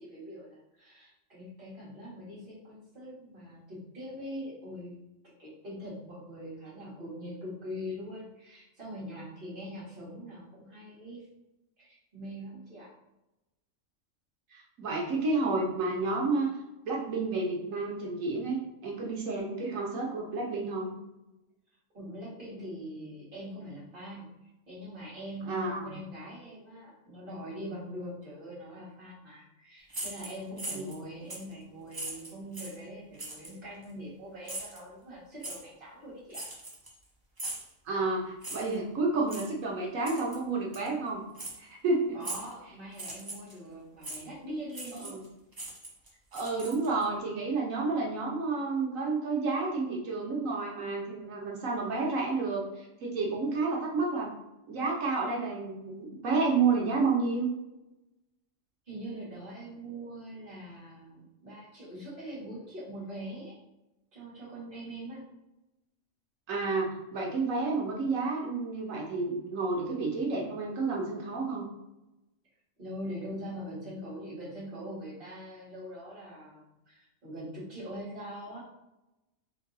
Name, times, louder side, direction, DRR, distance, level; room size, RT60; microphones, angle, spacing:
voice 1, 0.0-5.0 5.4-11.3 11.8-12.9 21.9-36.5 42.1-45.2 58.9-63.6 64.1-65.2 72.8-78.6, equal, 40° right, -8 dB, 1.8 m, -42 dB
voice 2, 14.5-16.5 16.9-20.9 25.4-26.0 30.7-30.9 37.9-41.2 41.6-42.2 45.0-45.2 46.3-54.3 54.7-57.5 66.5-71.7, right 3 dB, 85° right, -2 dB, 1.4 m, -30 dB
sound 1, 29.9-31.0 31.3-31.5 31.9-32.8 33.2-33.5 34.4-34.8 35.4-35.6 36.3-37.0 37.4-37.7 38.4-38.8 39.3-39.5 40.0-40.4 40.7-40.9 41.4-41.6 42.2-42.5 42.9-43.5 44.0-44.2 44.7-45.3 45.5-47.0, right 2 dB, 25° right, 0.6 m, -40 dB
3.8 x 2.7 x 4.0 m, 0.97 s
omnidirectional pair, 1.3 m